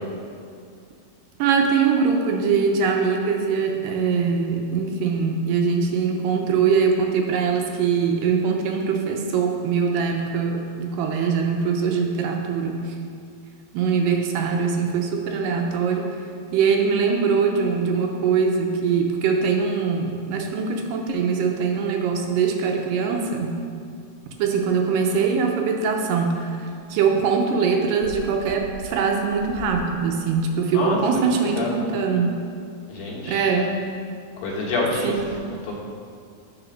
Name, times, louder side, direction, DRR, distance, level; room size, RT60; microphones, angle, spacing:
voice 1, 1.4-12.9 13.7-16.2 16.5-23.6 24.4-32.4 33.3-33.8 35.0-35.2, right 5 dB, 80° right, 2 dB, 2.3 m, -22 dB
voice 2, 31.3-31.7 32.9-33.5 34.4-35.1 35.7-35.8, left 3 dB, 75° left, -4 dB, 3.0 m, -27 dB
9.8 x 4.2 x 6.2 m, 2.3 s
omnidirectional pair, 4.1 m